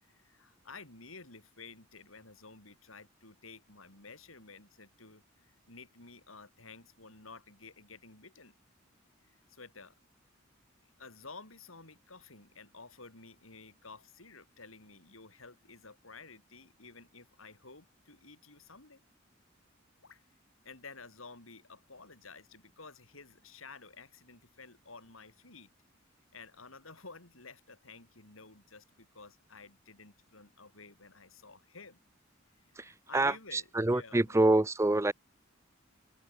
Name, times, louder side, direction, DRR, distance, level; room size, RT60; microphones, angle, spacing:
voice 1, 0.0-8.5 9.2-9.9 11.0-19.0 20.0-20.2 20.6-25.7 26.3-32.0 32.7-34.5, left 4 dB, 90° left, 6.3 m, -52 dB
voice 2, 32.8-35.1, right 2 dB, 15° right, 0.5 m, -27 dB
head